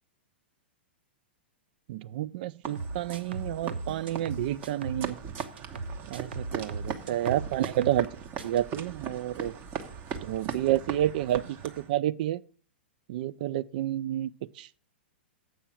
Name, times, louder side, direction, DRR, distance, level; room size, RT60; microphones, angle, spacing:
voice 1, 1.9-5.2 6.1-8.1 8.4-9.5 10.2-11.6 11.9-12.4 13.1-14.3 14.6-14.7, right 13 dB, 50° right, 0.4 m, -29 dB
sound 1, 2.6-11.9, right 7 dB, 35° right, 1.1 m, -39 dB
sound 2, 2.8-5.1 5.4-8.1 8.4-8.6, right 3 dB, 70° right, 0.9 m, -38 dB
7.7 x 5.6 x 7.0 m
figure-of-eight pair, 105°, 6 cm